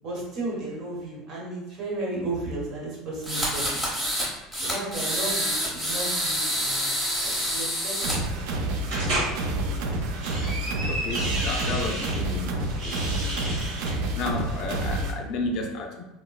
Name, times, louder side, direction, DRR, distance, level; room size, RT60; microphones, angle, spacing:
voice 1, 0.0-3.8 4.6-6.9 7.2-8.0 8.5-8.7, right 2 dB, 45° right, -3 dB, 1.0 m, -34 dB
sound 1, 3.2-4.3 4.5-8.2, equal, 10° right, 0.9 m, -27 dB
sound 2, 8.0-15.1, right 1 dB, 65° right, 0.4 m, -29 dB
sound 3, 8.9-9.3 10.0-12.2 12.7-13.9, right 1 dB, 85° right, 1.2 m, -31 dB
voice 2, 10.8-13.0 14.1-16.0, left 3 dB, 45° left, 3 dB, 0.3 m, -32 dB
3.7 x 2.0 x 2.3 m, 0.97 s
cardioid pair, 175°, 0 cm